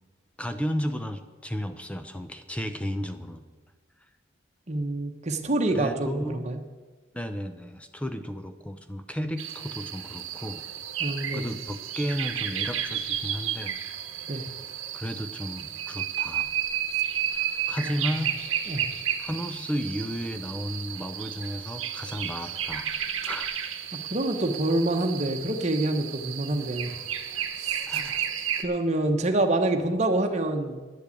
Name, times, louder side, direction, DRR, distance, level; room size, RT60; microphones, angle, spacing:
voice 1, 0.4-3.5 5.7-6.5 7.1-10.6 11.3-13.8 14.9-16.5 17.7-18.3 19.2-23.0 23.3-23.5 27.9-28.2, equal, 5° left, 8 dB, 0.6 m, -33 dB
voice 2, 4.7-6.6 11.0-11.4 14.3-14.4 17.8-17.9 18.7-18.8 24.1-26.9 27.6-27.8 28.6-30.8, right 2 dB, 35° right, 4 dB, 1.1 m, -26 dB
sound 1, 9.4-28.6, right 9 dB, 75° right, 1.1 m, -32 dB
10.5 x 7.9 x 8.4 m, 1.3 s
head